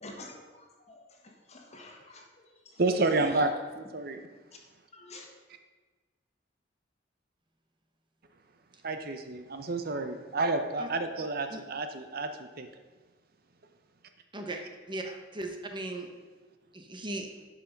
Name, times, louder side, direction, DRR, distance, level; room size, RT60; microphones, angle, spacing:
voice 1, 0.0-2.8 3.3-3.4 4.9-5.3, left 2 dB, 35° left, 1.6 m, -49 dB
voice 2, 2.8-4.2 8.8-12.7, right 2 dB, 50° right, 0.7 m, -30 dB
voice 3, 14.9-16.1 16.7-17.3, right 2 dB, 25° right, 1.0 m, -37 dB
11.0 x 5.8 x 5.2 m
head